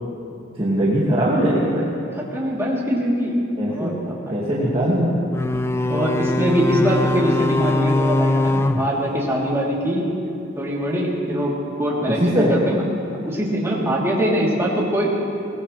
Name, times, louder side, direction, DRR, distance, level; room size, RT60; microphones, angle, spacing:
voice 1, 0.6-1.9 3.6-4.0 4.3-5.2 12.1-12.5, right 1 dB, 30° right, -7 dB, 2.1 m, -20 dB
voice 2, 2.3-3.3 3.7-4.3 5.9-10.1 10.6-11.5 11.8-12.8 13.2-15.2, equal, 15° right, -5 dB, 3.2 m, -22 dB
sound 1, 5.3-9.8, left 2 dB, 15° left, 0.4 m, -22 dB
23.0 x 19.0 x 3.3 m, 2.8 s
head